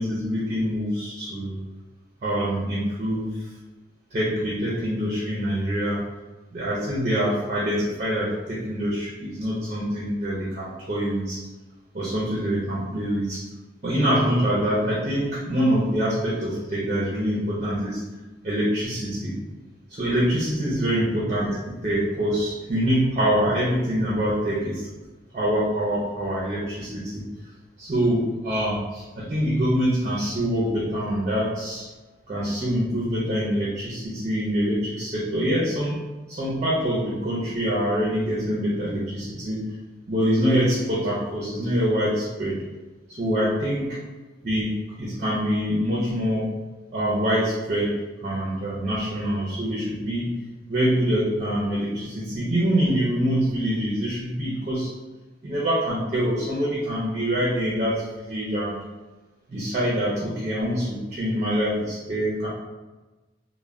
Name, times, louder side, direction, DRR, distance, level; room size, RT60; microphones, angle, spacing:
voice 1, 0.0-1.6 2.2-3.4 4.1-6.0 6.5-11.4 11.9-13.4 13.8-18.0 18.4-19.3 19.9-24.9 25.3-27.2 27.8-31.9 32.3-36.0 36.3-39.7 40.1-42.6 43.1-44.0 44.4-46.5 46.9-50.3 50.7-54.9 55.4-58.8 59.5-62.5, equal, 40° right, -5 dB, 0.5 m, -25 dB
2.1 x 2.1 x 3.4 m, 1.2 s
head